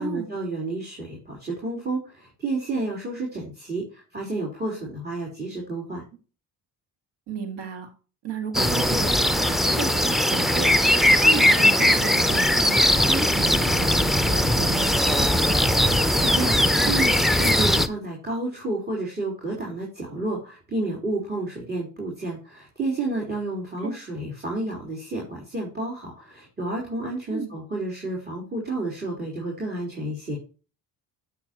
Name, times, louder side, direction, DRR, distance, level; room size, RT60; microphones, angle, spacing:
voice 1, 0.0-6.0 15.9-30.4, right 2 dB, 25° right, -2 dB, 4.0 m, -30 dB
voice 2, 7.3-7.9 8.2-10.7 11.2-13.9 14.2-15.3 23.8-23.9 27.3-27.5, right 5 dB, 85° right, 6 dB, 2.3 m, -33 dB
sound 1, 8.5-17.9, left 1 dB, ahead, 0.7 m, -20 dB
8.6 x 7.4 x 2.9 m, 0.35 s
cardioid pair, 80°, 40 cm